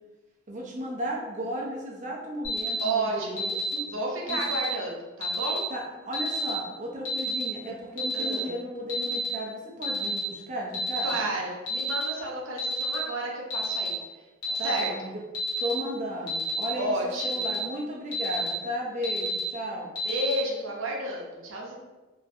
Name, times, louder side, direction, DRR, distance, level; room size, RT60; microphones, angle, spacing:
voice 1, 0.5-3.9 4.3-4.4 5.7-11.1 14.6-15.1 15.6-17.0 17.2-19.9, equal, 40° right, -3 dB, 0.6 m, -34 dB
Alarm, 2.4-2.8 3.4-3.7 4.3-4.6 5.2-5.6 6.1-6.5 7.0-7.4 8.0-8.3 8.9-9.3 9.8-10.2 10.7-11.1 11.7-12.0 12.6-12.9 13.5-13.9 14.4-14.8 15.3-15.7 16.3-16.6 17.2-17.5 18.1-18.5 19.0-19.4 20.0-20.3, equal, 75° left, 1.2 m, -30 dB
voice 2, 2.8-3.5 3.8-5.6 8.1-8.5 11.0-13.9 14.4-14.9 16.8-17.4 20.0-21.7, right 1 dB, 80° right, -1 dB, 0.7 m, -31 dB
2.9 x 2.5 x 2.5 m, 1.2 s
head